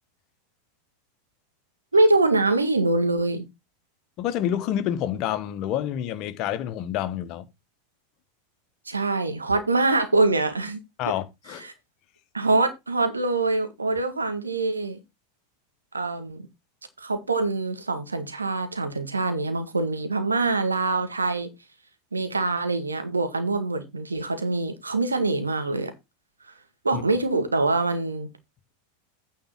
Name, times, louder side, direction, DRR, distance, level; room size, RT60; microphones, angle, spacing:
voice 1, 1.9-3.5 8.9-10.8 11.6-11.7 12.3-15.0 15.9-16.5 17.0-21.5 22.1-25.9 26.8-28.3, right 3 dB, 85° right, 1.8 m, -24 dB
voice 2, 4.2-7.4 11.0-11.7 26.9-27.0, left 11 dB, 45° left, 1.3 m, -28 dB
9.4 x 4.8 x 5.9 m
figure-of-eight pair, 85°, 0 cm